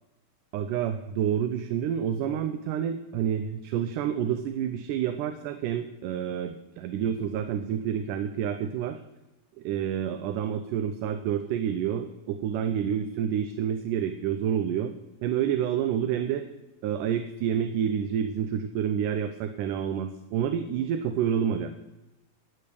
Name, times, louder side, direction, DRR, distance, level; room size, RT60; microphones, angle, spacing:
voice 1, 0.5-9.0 9.6-14.9 15.2-16.5 16.8-21.7, right 9 dB, 90° right, 8 dB, 2.2 m, -28 dB
10.5 x 7.5 x 6.8 m, 1.0 s
omnidirectional pair, 3.6 m